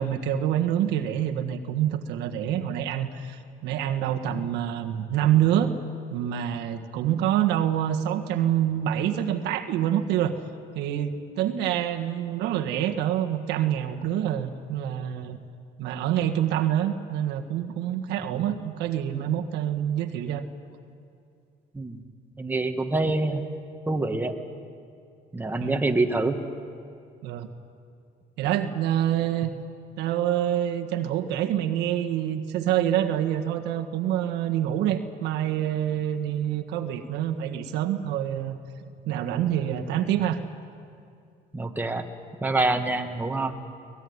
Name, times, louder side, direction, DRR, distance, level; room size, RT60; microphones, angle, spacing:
voice 1, 0.0-5.7 6.1-10.3 10.7-15.4 15.8-20.4 25.6-25.8 27.2-27.5 28.4-29.5 30.0-38.6 39.0-40.4, right 11 dB, 90° right, 5 dB, 1.6 m, -26 dB
voice 2, 22.4-23.4 23.9-24.3 25.3-26.4 41.5-42.0 42.4-43.5, right 2 dB, 10° right, 5 dB, 1.9 m, -26 dB
25.0 x 18.5 x 9.6 m, 2.4 s
cardioid pair, 110°, 17 cm